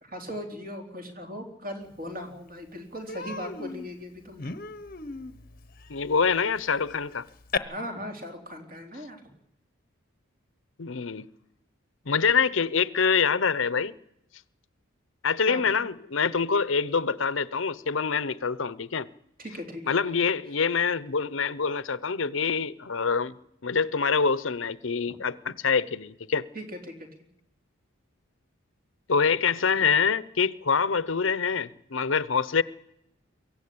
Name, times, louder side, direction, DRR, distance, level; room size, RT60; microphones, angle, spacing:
voice 1, 0.0-4.5 7.7-9.2 15.5-15.8 19.4-19.9 25.0-25.2 26.5-27.1, equal, 45° right, 3.5 m, -38 dB
Human voice, 2.1-2.2 2.5-2.7 3.1-7.6, left 4 dB, 45° left, 0.9 m, -37 dB
voice 2, 5.9-7.3 10.8-11.3 12.1-13.9 15.2-19.1 19.9-23.3 23.6-26.5 29.1-32.6, left 5 dB, 75° left, 0.8 m, -25 dB
23.0 x 15.5 x 8.7 m
head